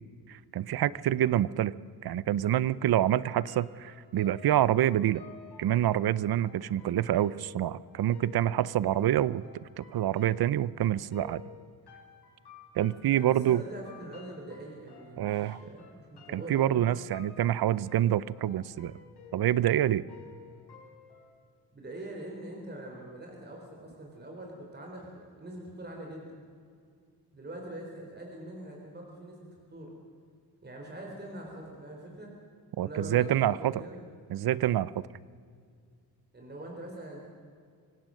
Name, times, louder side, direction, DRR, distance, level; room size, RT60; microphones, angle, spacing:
voice 1, 0.3-1.8 2.0-5.2 5.6-9.4 9.8-11.4 12.8-13.6 15.2-15.6 16.3-18.9 19.3-20.0 32.8-33.8 34.3-34.9, right 12 dB, 65° right, 20 dB, 0.7 m, -27 dB
sound 1, 3.0-21.3, left 6 dB, 80° left, 5.6 m, -53 dB
voice 2, 13.1-16.9 21.7-26.3 27.3-29.9 30.6-32.3 32.8-34.0 36.3-37.3, right 1 dB, 25° right, 0 dB, 3.9 m, -43 dB
25.0 x 17.0 x 6.4 m, 2.2 s
cardioid pair, 110°, 39 cm